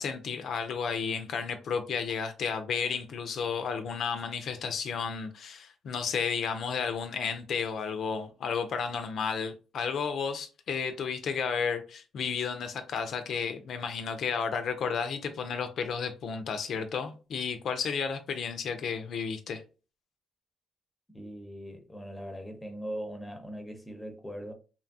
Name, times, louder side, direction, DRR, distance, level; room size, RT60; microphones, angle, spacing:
voice 1, 0.0-19.6, left 6 dB, 65° left, 0.4 m, -32 dB
voice 2, 21.1-24.5, equal, 10° left, 0.6 m, -40 dB
2.7 x 2.3 x 2.6 m
cardioid pair, 90°, 0 cm